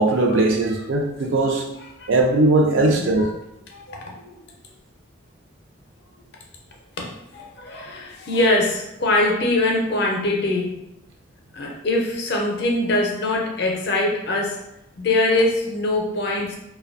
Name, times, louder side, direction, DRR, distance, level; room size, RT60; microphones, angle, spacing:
voice 1, 0.0-1.7 2.1-3.3, right 2 dB, 70° right, 1 dB, 0.4 m, -19 dB
voice 2, 3.7-4.3 7.0-10.8 11.5-14.6 15.0-16.6, left 2 dB, 55° left, 0 dB, 0.5 m, -23 dB
2.5 x 2.2 x 2.4 m, 0.83 s
head